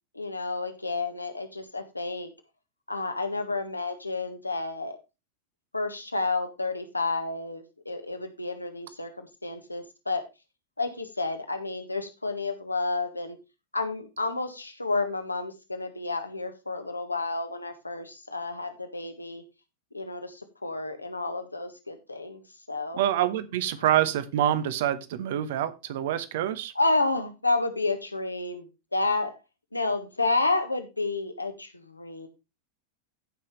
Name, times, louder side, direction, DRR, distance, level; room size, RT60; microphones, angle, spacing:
voice 1, 0.1-2.3 2.9-5.0 5.7-10.2 10.8-13.4 13.7-19.4 19.9-22.4 22.7-23.0 26.7-29.4 29.7-32.3, left 3 dB, 85° left, 6 dB, 1.5 m, -30 dB
voice 2, 22.9-26.7, right 11 dB, 55° right, 14 dB, 1.0 m, -26 dB
15.0 x 5.8 x 3.2 m, 0.27 s
figure-of-eight pair, 90°, 0 cm